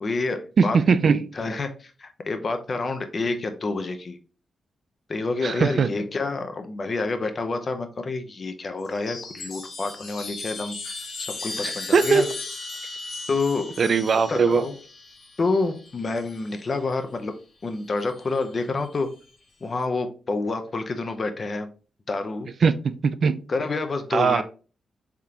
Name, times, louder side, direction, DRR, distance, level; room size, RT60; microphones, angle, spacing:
voice 1, 0.0-0.8 1.1-4.2 5.1-12.3 13.3-13.7 14.3-14.8 15.4-17.3 17.6-19.1 19.6-21.7 22.1-22.5 23.5-24.4, left 3 dB, 45° left, 0.6 m, -28 dB
voice 2, 0.6-1.3 5.4-5.9 11.6-12.3 13.8-14.6 22.6-23.4 24.1-24.4, right 5 dB, 55° right, 0.3 m, -20 dB
Chime, 8.8-16.6 17.9-18.5, left 3 dB, 70° left, 1.2 m, -37 dB
3.7 x 3.6 x 2.8 m
cardioid pair, 85°, 0 cm